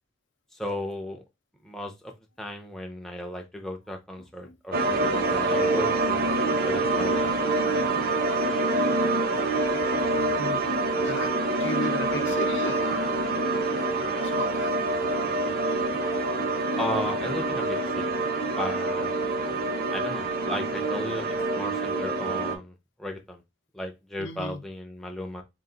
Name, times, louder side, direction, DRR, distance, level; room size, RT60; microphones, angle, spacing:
voice 1, 0.5-1.2 1.6-2.1 2.4-7.3 16.8-18.2 18.6-19.1 19.9-22.7 23.0-23.4 23.7-25.4, left 1 dB, ahead, 0.5 m, -35 dB
sound 1, 4.7-22.5, right 2 dB, 50° right, 0.8 m, -26 dB
voice 2, 11.0-11.3 11.6-13.1 14.2-14.7 24.2-24.6, left 2 dB, 75° left, 0.7 m, -35 dB
3.8 x 2.5 x 3.8 m
head